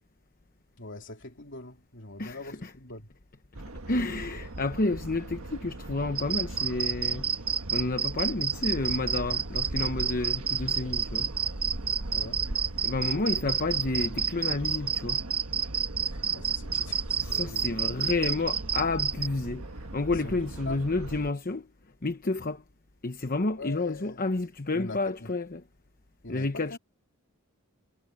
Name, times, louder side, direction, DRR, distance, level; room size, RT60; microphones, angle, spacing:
voice 1, 0.8-3.1 12.1-12.4 16.0-17.8 20.2-20.8 23.6-24.2 24.7-25.3 26.2-26.8, left 2 dB, 55° left, 3.2 m, -43 dB
voice 2, 2.2-2.7 3.9-7.3 7.7-11.3 12.8-15.2 17.2-21.7 22.0-22.6 23.0-25.6 26.3-26.8, left 2 dB, 40° left, 1.0 m, -30 dB
sound 1, 3.5-21.3, right 1 dB, 75° right, 1.5 m, -39 dB
sound 2, 6.2-19.3, right 7 dB, 25° right, 0.8 m, -29 dB
head